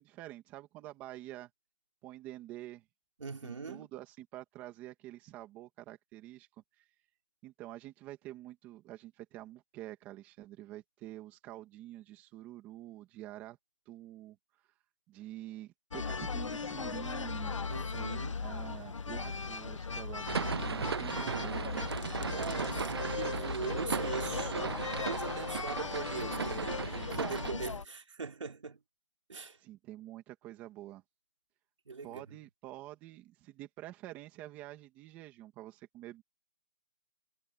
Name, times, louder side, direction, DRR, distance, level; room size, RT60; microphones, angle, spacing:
voice 1, 0.0-1.5 2.0-2.8 3.4-6.5 6.8-6.9 7.4-13.6 13.9-14.4 15.1-17.6 18.4-21.9 29.6-31.0 32.0-36.2, right 15 dB, 10° right, 2.5 m, -47 dB
voice 2, 3.2-3.9 17.7-18.4 22.2-28.8 29.3-29.6 31.9-32.4, right 4 dB, 65° right, 3.7 m, -41 dB
sound 1, 15.9-27.8, left 5 dB, 65° left, 1.6 m, -38 dB
sound 2, 20.3-27.5, right 6 dB, 50° right, 0.6 m, -37 dB
hypercardioid pair, 175°, 17 cm